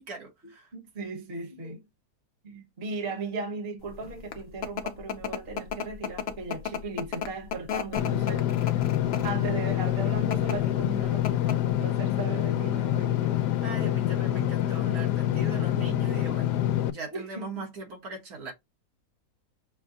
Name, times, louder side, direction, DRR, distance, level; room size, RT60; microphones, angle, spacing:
voice 1, 0.0-0.7 13.6-16.6 16.9-18.5, right 3 dB, 60° right, 1.7 m, -40 dB
voice 2, 0.7-1.8 2.4-13.4 17.1-17.6, right 3 dB, 40° right, 1.3 m, -37 dB
sound 1, 4.0-9.4 10.2-10.6 10.9-11.0 11.2-11.7, left 8 dB, 60° left, 0.6 m, -33 dB
Engine / Mechanisms, 8.0-16.9, left 12 dB, 80° left, 1.2 m, -26 dB
6.3 x 2.2 x 2.6 m
omnidirectional pair, 1.8 m